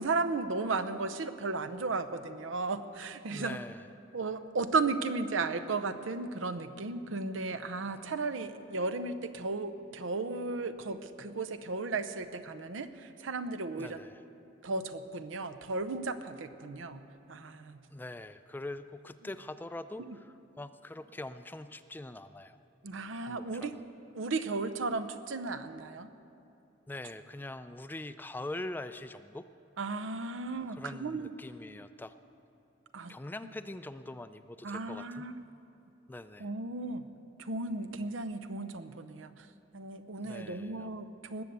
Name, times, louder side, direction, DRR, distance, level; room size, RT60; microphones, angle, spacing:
voice 1, 0.0-3.6 4.1-14.0 14.6-17.8 20.1-20.2 22.8-23.8 24.1-26.1 29.8-31.3 32.9-33.2 34.6-35.3 36.4-37.1 37.4-39.5 39.7-41.4, right 3 dB, 85° right, 11 dB, 0.7 m, -35 dB
voice 2, 3.3-3.9 13.8-14.2 17.9-22.6 23.2-23.8 26.9-29.4 30.7-32.1 33.1-35.3 36.1-36.5 40.2-40.9, left 2 dB, 10° left, 12 dB, 0.3 m, -43 dB
19.5 x 6.9 x 8.0 m, 2.8 s
head